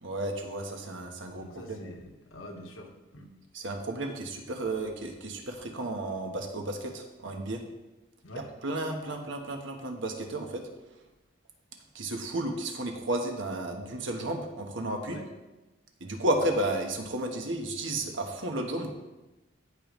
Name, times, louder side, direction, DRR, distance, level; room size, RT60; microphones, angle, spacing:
voice 1, 0.0-1.9 3.5-7.6 8.3-10.6 11.9-15.2 16.0-18.9, right 1 dB, 70° right, 3 dB, 1.2 m, -33 dB
voice 2, 1.3-3.3 8.2-8.5 15.1-15.2, left 1 dB, 80° left, 2 dB, 1.3 m, -46 dB
14.5 x 5.2 x 3.1 m, 1.1 s
head